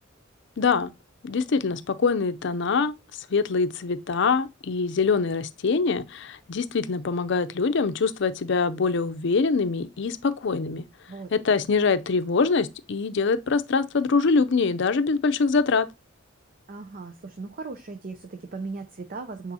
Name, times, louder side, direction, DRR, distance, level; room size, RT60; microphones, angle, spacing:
voice 1, 0.6-0.9 1.2-2.9 3.3-10.9 11.3-15.9, left 4 dB, 65° left, 0.5 m, -24 dB
voice 2, 11.1-11.6 16.7-19.5, right 3 dB, 45° right, 0.6 m, -37 dB
8.7 x 4.0 x 2.7 m
head